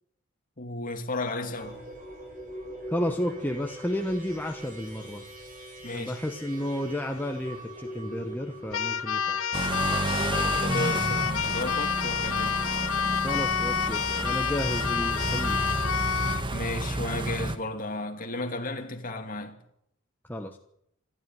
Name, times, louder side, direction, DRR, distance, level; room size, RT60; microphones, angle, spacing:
voice 1, 0.6-1.8 5.8-6.2 10.6-12.7 16.5-19.6, left 2 dB, 40° left, 2.8 m, -34 dB
sound 1, 1.6-9.4, right 1 dB, 40° right, 6.9 m, -42 dB
voice 2, 2.9-5.2 5.9-9.8 13.2-15.9 20.3-20.6, left 1 dB, 10° left, 1.1 m, -32 dB
Keyboard (musical), 8.7-16.5, left 7 dB, 70° left, 0.9 m, -29 dB
sound 2, 9.5-17.6, right 2 dB, 25° right, 1.4 m, -31 dB
26.5 x 13.0 x 9.3 m
head